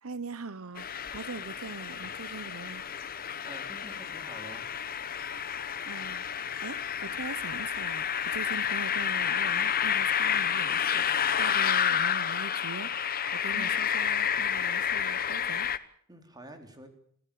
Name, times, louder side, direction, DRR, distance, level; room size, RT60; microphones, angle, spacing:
voice 1, 0.0-2.8 5.9-12.9 13.3-15.7, right 4 dB, 70° right, 15 dB, 0.9 m, -42 dB
sound 1, 0.8-15.8, left 8 dB, 45° left, 1.1 m, -30 dB
voice 2, 3.4-4.6 13.5-13.7 16.1-16.9, right 1 dB, 20° right, 6 dB, 3.8 m, -47 dB
27.0 x 15.5 x 8.6 m, 0.62 s
head